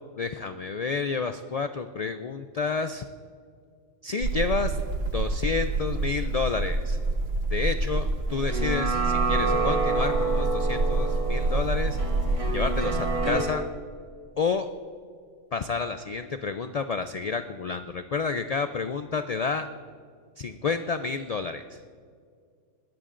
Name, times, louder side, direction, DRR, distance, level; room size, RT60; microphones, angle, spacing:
voice 1, 0.2-3.0 4.0-4.8 5.1-7.0 7.5-12.0 12.3-13.6 14.4-14.7 15.5-19.7 20.4-21.8, left 5 dB, 80° left, 9 dB, 0.3 m, -30 dB
sound 1, 4.2-13.3, right 3 dB, 60° right, 1.0 m, -27 dB
sound 2, 8.3-13.4, right 3 dB, 30° right, 1.2 m, -28 dB
20.5 x 15.0 x 2.5 m, 2.1 s
omnidirectional pair, 1.3 m